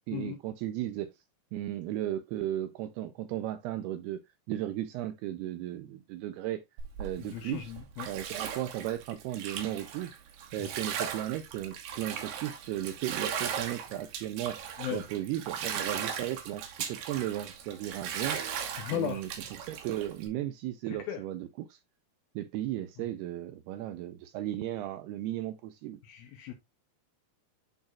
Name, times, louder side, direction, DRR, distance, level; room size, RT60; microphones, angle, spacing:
voice 1, 0.1-1.1 1.5-4.2 4.5-6.6 7.0-7.7 8.1-10.1 10.5-14.6 14.9-18.4 18.9-21.8 22.4-26.0, right 13 dB, 85° right, 2.3 m, -35 dB
Bathtub (filling or washing), 6.8-20.3, right 8 dB, 65° right, 2.5 m, -38 dB
voice 2, 7.2-8.1 10.6-10.7 14.8-15.0 18.8-19.3 20.9-21.2 26.0-26.5, left 10 dB, 80° left, 2.2 m, -36 dB
11.0 x 4.0 x 2.3 m
omnidirectional pair, 5.0 m